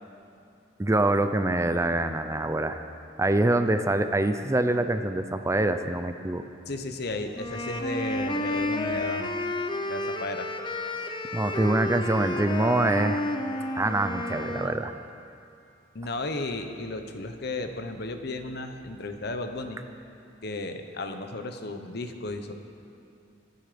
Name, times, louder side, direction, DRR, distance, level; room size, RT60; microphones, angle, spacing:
voice 1, 0.8-2.8 3.2-6.4 11.3-13.2 13.8-14.9, right 2 dB, 15° right, 9 dB, 0.5 m, -25 dB
voice 2, 6.7-9.3 9.9-10.5 15.9-19.8 20.4-22.5, left 2 dB, 60° left, 7 dB, 1.1 m, -34 dB
sound 1, 7.3-14.8, left 1 dB, 25° left, 0.8 m, -31 dB
25.0 x 9.8 x 5.2 m, 2.5 s
head